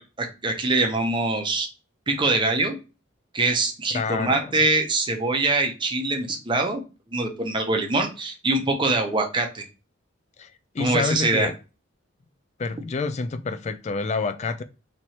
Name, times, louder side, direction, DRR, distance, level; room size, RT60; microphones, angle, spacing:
voice 1, 0.0-1.7 2.1-2.8 3.3-6.8 7.1-9.6 10.8-11.5, right 2 dB, 25° right, 0.7 m, -24 dB
voice 2, 3.9-4.6 10.4-11.5 12.6-14.6, left 4 dB, 35° left, 0.3 m, -28 dB
3.1 x 2.9 x 4.1 m
head